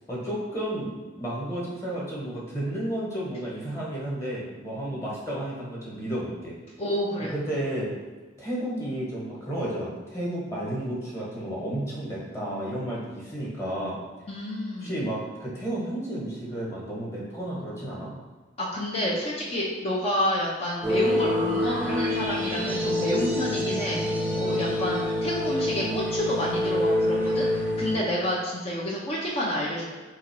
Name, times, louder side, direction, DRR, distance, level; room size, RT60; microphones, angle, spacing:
voice 1, 0.1-6.5 7.3-7.9 8.4-14.0 14.8-18.1, right 1 dB, 15° left, -6 dB, 1.3 m, -32 dB
voice 2, 6.8-7.3 14.3-14.9 18.6-24.1 24.4-29.9, left 1 dB, 30° left, -4 dB, 0.6 m, -29 dB
sound 1, 20.8-27.9, left 1 dB, 10° right, 0.8 m, -26 dB
3.9 x 2.9 x 4.6 m, 1.4 s
head